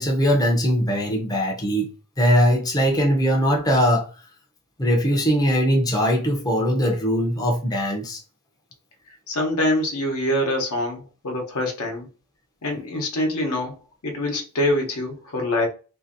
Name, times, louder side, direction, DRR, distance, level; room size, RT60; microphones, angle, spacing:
voice 1, 0.0-1.9 2.2-4.1 4.8-8.2, equal, 15° left, 0.5 m, -20 dB
voice 2, 9.1-12.1 12.6-13.8 14.0-15.7, left 1 dB, 80° left, 0.9 m, -25 dB
2.7 x 2.6 x 2.5 m
head